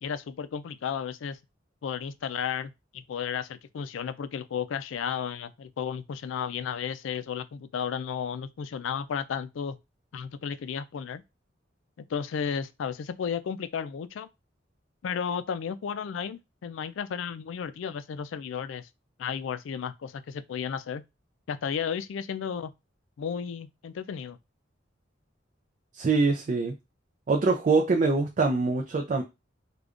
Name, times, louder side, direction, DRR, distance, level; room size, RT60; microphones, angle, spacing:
voice 1, 0.0-1.4 1.8-9.8 10.1-11.2 12.1-14.3 15.0-18.9 19.2-21.0 21.5-22.7 23.2-24.4, left 7 dB, 80° left, 0.3 m, -33 dB
voice 2, 25.9-26.7 27.3-29.2, right 3 dB, 40° right, 0.4 m, -24 dB
4.9 x 2.2 x 2.4 m
head